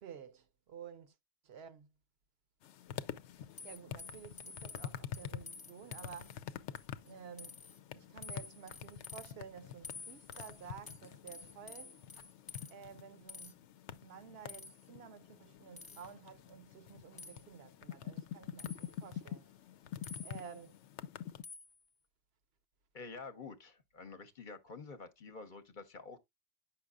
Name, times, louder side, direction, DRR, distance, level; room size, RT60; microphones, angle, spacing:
voice 1, 0.0-1.2 1.4-1.9 3.6-6.4 7.0-7.6 7.9-12.1 12.7-13.7 14.0-19.7 20.2-20.8, right 7 dB, 70° right, 0.8 m, -52 dB
sound 1, 2.6-21.4, left 10 dB, 90° left, 0.9 m, -47 dB
sound 2, 3.6-6.4 6.7-7.1 7.4-7.8 8.2-9.3 9.8-12.7 13.3-13.5 14.5-14.9 15.8-16.1 17.2-17.4 18.6-19.0 20.0-20.6 21.4-21.8, left 4 dB, 25° left, 0.6 m, -51 dB
voice 2, 22.9-26.2, left 4 dB, 50° left, 0.9 m, -49 dB
9.1 x 5.8 x 2.3 m
omnidirectional pair, 1.2 m